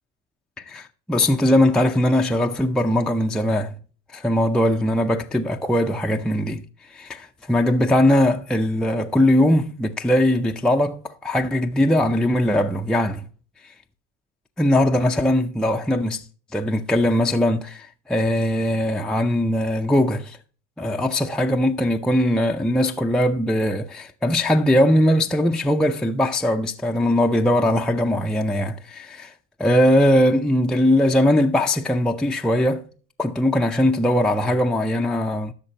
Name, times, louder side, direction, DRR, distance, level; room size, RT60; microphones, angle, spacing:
voice 1, 0.6-3.8 4.1-13.3 13.6-13.7 14.6-16.2 16.5-20.4 20.8-29.3 29.6-32.9 33.2-35.5, left 1 dB, ahead, 0.5 m, -20 dB
13.0 x 5.8 x 2.8 m
supercardioid pair, 95°, 36 cm